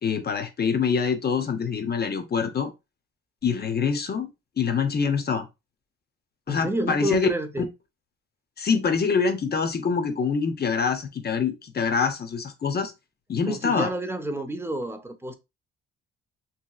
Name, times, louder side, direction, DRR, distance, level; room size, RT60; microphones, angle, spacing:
voice 1, 0.0-2.7 3.4-4.3 4.6-5.5 6.5-7.3 8.6-12.9 13.3-13.9, left 5 dB, 35° left, 0.7 m, -25 dB
voice 2, 6.5-7.7 13.5-15.4, right 1 dB, 10° right, 0.5 m, -29 dB
2.8 x 2.8 x 2.3 m
cardioid pair, 90°, 30 cm